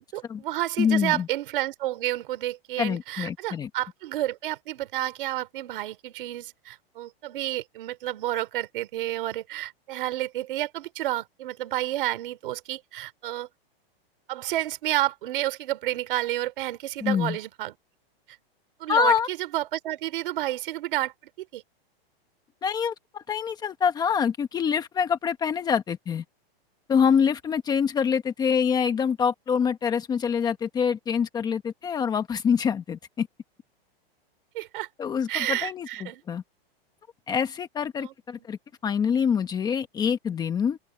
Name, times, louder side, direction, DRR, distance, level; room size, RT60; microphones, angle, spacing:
voice 1, 0.1-13.5 14.3-17.7 18.8-21.6 34.5-34.9 35.3-36.2 38.0-38.1, right 15 dB, 60° right, 3.9 m, -30 dB
voice 2, 0.8-1.3 2.8-3.7 17.0-17.4 18.9-19.3 22.6-26.2 26.9-33.3 35.0-36.4 37.3-40.8, left 7 dB, 15° left, 1.2 m, -25 dB
supercardioid pair, 165°, 30 cm